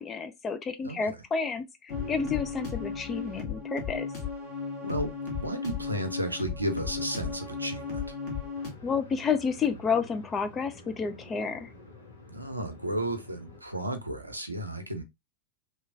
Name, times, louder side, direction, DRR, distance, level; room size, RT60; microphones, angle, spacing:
voice 1, 0.0-1.6 2.1-4.1 8.8-11.7, left 6 dB, 20° left, 0.4 m, -30 dB
voice 2, 0.8-1.2 4.8-8.2 12.3-15.0, right 1 dB, 85° right, 0.6 m, -33 dB
sound 1, 1.9-8.7, left 5 dB, 45° left, 1.3 m, -35 dB
sound 2, 8.5-13.6, left 2 dB, 75° left, 0.9 m, -50 dB
3.0 x 2.3 x 3.3 m
figure-of-eight pair, 90°, 0 cm